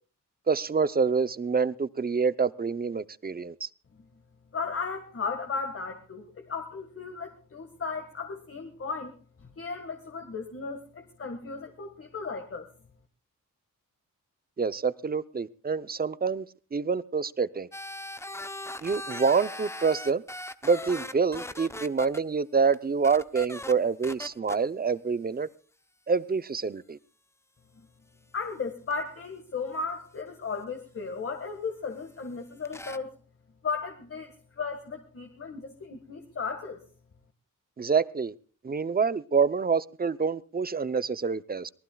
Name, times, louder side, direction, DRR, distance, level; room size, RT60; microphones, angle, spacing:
voice 1, 0.5-3.7 14.6-16.4 16.7-17.7 18.8-20.2 20.6-25.5 26.1-27.0 37.8-38.3 38.6-41.7, right 5 dB, 30° right, 0.6 m, -27 dB
voice 2, 4.5-12.7 28.3-33.1 33.6-36.8, left 4 dB, 45° left, 1.7 m, -35 dB
sound 1, 17.7-22.2 22.7-22.8 23.0-23.7 24.0-24.6 28.9-29.0 32.6-33.0, left 1 dB, 10° left, 0.7 m, -39 dB
24.0 x 19.0 x 2.3 m
wide cardioid pair, 155°, 33 cm